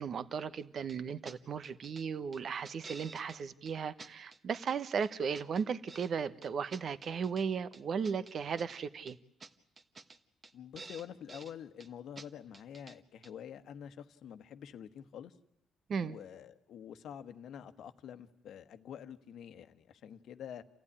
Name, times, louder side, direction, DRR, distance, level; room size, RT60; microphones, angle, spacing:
voice 1, 0.0-9.2 15.9-16.2, right 6 dB, 55° right, 14 dB, 1.1 m, -36 dB
sound 1, 0.9-1.0 1.2-1.4 1.6-2.0 2.3-3.4 3.7-3.8 4.0-4.8 5.0-6.1 6.4-7.4 7.7-8.8 9.1-9.2 9.4-9.5 9.8-10.2 10.4-10.5 10.8-11.5 11.8-11.9 12.2-12.3 12.5-13.0 13.2-13.3, right 3 dB, 35° right, 1.4 m, -51 dB
voice 2, 10.5-15.3 16.0-20.6, left 9 dB, 75° left, 10 dB, 1.2 m, -47 dB
28.5 x 15.0 x 10.0 m, 0.83 s
cardioid pair, 90°, 0 cm